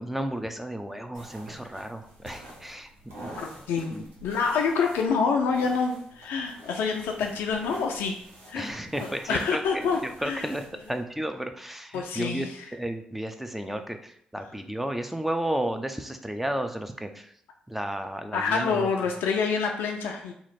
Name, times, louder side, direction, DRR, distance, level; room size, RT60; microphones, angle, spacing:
voice 1, 0.0-3.3 3.9-4.1 8.5-17.3 17.7-18.9, right 1 dB, 5° right, 7 dB, 0.5 m, -33 dB
sound 1, 1.1-11.0, right 1 dB, 80° right, 0.9 m, -47 dB
voice 2, 3.4-8.2 8.5-8.8 9.3-10.5 11.9-12.6 18.3-20.3, left 5 dB, 70° left, 2 dB, 0.4 m, -27 dB
2.9 x 2.4 x 4.2 m, 0.69 s
hypercardioid pair, 40°, 4 cm